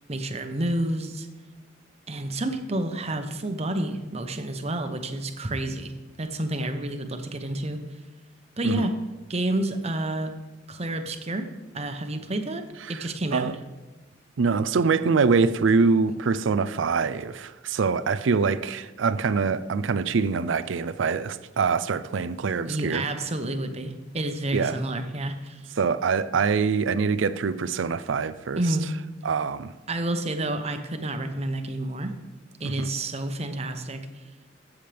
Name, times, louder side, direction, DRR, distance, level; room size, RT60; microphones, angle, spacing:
voice 1, 0.1-1.3 2.1-5.9 6.2-7.8 8.6-9.0 9.3-10.4 10.7-13.5 22.7-25.6 28.6-28.9 29.9-32.2 32.6-34.0, right 1 dB, 35° right, 0.9 m, -29 dB
voice 2, 12.8-13.6 14.4-23.0 24.5-24.8 25.8-28.6 29.2-29.7 32.6-32.9, right 5 dB, 80° right, 0.5 m, -24 dB
15.5 x 7.2 x 3.4 m
head